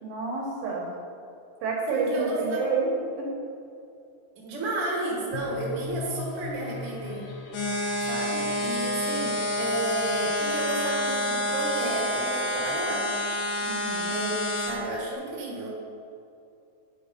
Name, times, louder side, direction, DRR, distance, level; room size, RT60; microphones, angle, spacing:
voice 1, 0.0-0.9 1.6-2.9 3.2-3.3 13.6-14.1, right 4 dB, 70° right, -3 dB, 2.9 m, -29 dB
voice 2, 1.9-2.7 4.3-7.3 8.1-13.3 14.1-15.7, right 2 dB, 45° right, -4 dB, 1.7 m, -32 dB
sound 1, 5.3-13.2, left 4 dB, 85° left, 1.4 m, -42 dB
sound 2, 7.5-14.7, left 1 dB, 65° left, 1.9 m, -28 dB
9.1 x 4.6 x 5.2 m, 2.5 s
omnidirectional pair, 4.4 m